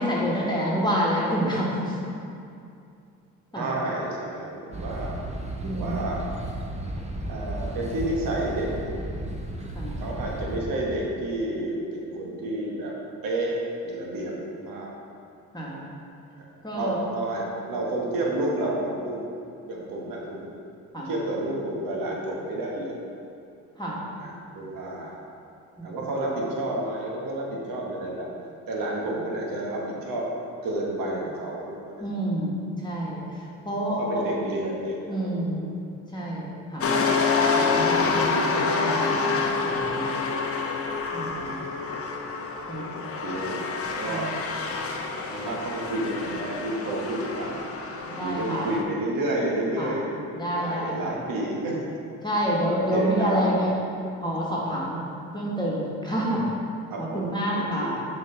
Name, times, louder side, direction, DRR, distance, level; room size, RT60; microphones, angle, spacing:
voice 1, 0.0-1.9 3.5-3.7 5.6-5.9 9.7-10.0 15.5-15.9 16.6-17.0 20.9-21.1 23.8-24.0 25.8-25.9 32.0-32.5 32.8-33.2 33.7-34.2 35.1-35.7 36.1-36.9 37.3-40.1 41.1-41.6 42.7-42.9 44.1-44.3 48.1-48.7 49.8-49.9 50.4-51.1 52.2-53.7 54.2-56.5 57.0-58.0, equal, 10° left, -5 dB, 1.4 m, -28 dB
voice 2, 3.5-5.1 5.6-6.2 7.2-8.7 10.0-12.9 13.2-14.9 16.7-19.2 19.7-20.4 21.0-23.0 24.2-25.2 25.8-30.2 30.6-32.0 33.5-35.5 38.7-38.8 43.2-43.6 44.0-44.3 45.3-47.6 48.0-50.2 50.5-51.8 52.6-53.6 56.9-58.1, right 1 dB, 65° right, -2 dB, 1.4 m, -30 dB
sound 1, 4.7-10.6, right 1 dB, 20° right, 1.0 m, -34 dB
sound 2, 36.8-48.8, left 4 dB, 40° left, 0.8 m, -27 dB
6.4 x 4.6 x 4.5 m, 2.5 s
supercardioid pair, 60°, 36 cm